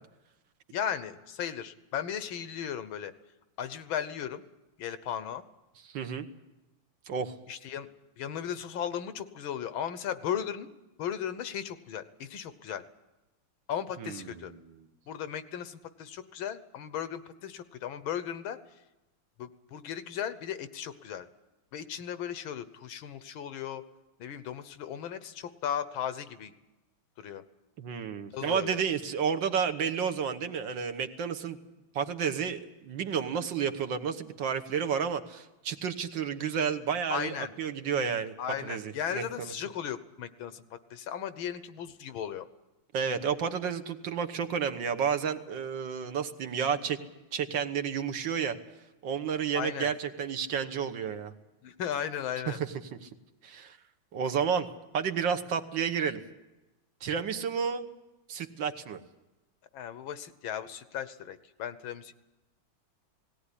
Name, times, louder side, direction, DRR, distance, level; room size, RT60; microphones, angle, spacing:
voice 1, 0.7-3.1 3.6-4.4 4.8-5.4 7.5-7.9 8.2-10.7 11.0-12.8 13.7-14.5 15.1-18.6 19.4-21.3 21.7-23.8 24.2-26.5 27.2-27.4 28.3-28.8 37.1-37.5 38.4-42.5 49.5-49.9 51.6-52.6 59.7-62.1, left 9 dB, 80° left, 13 dB, 1.8 m, -36 dB
voice 2, 5.9-6.3 7.1-7.3 14.0-14.8 27.8-31.6 32.0-38.3 38.6-39.5 42.9-47.0 47.3-48.6 49.0-51.3 52.5-52.7 53.0-53.1 53.4-53.8 54.1-54.7 54.9-56.2 57.0-57.9 58.3-59.0, right 7 dB, 70° right, 7 dB, 1.8 m, -31 dB
18.0 x 17.0 x 9.9 m, 1.0 s
omnidirectional pair, 2.2 m